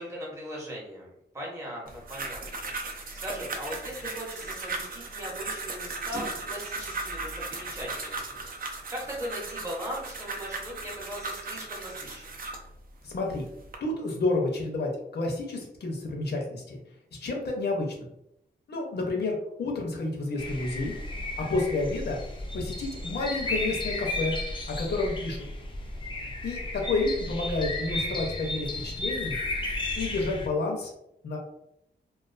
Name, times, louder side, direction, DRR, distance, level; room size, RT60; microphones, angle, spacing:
voice 1, 0.0-12.3, equal, 15° right, -4 dB, 0.7 m, -39 dB
sound 1, 1.9-12.7 13.3-13.8, right 3 dB, 55° right, 0.4 m, -37 dB
voice 2, 13.0-13.4 13.8-16.8 17.2-18.1 18.7-20.9 21.5-22.2 22.5-24.4 24.8-25.4 26.4-29.4 30.0-30.9 31.2-31.4, left 2 dB, 70° left, 0 dB, 0.6 m, -30 dB
sound 2, 20.4-30.5, left 2 dB, 25° left, 0.4 m, -34 dB
2.3 x 2.3 x 2.4 m, 0.80 s
wide cardioid pair, 125°, 18 cm